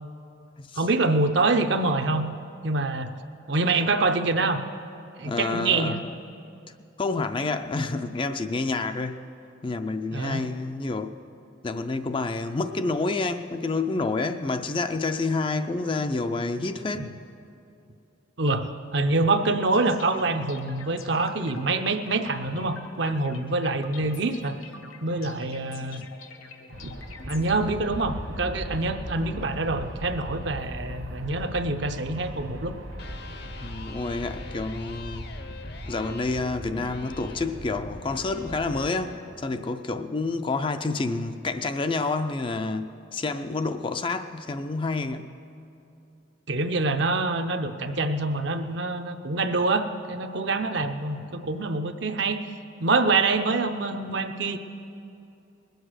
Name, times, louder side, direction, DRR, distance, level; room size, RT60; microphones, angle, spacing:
voice 1, 0.8-2.3 2.6-3.1 3.5-4.6 5.2-6.0 10.1-10.4 16.9-17.1 18.4-24.5 25.0-26.1 26.8-26.9 27.2-32.8 46.5-52.4 52.8-54.6, right 3 dB, 60° right, 0.7 m, -25 dB
voice 2, 5.2-6.1 7.0-9.2 9.6-11.1 11.6-17.1 33.6-35.3 35.9-45.3, left 3 dB, 25° left, 0.4 m, -28 dB
sound 1, 19.7-27.6, left 5 dB, 85° left, 1.0 m, -46 dB
Aircraft, 26.7-38.9, equal, 75° right, 1.4 m, -39 dB
Electric guitar, 32.9-40.9, left 3 dB, 50° left, 0.8 m, -45 dB
20.5 x 8.0 x 6.4 m
head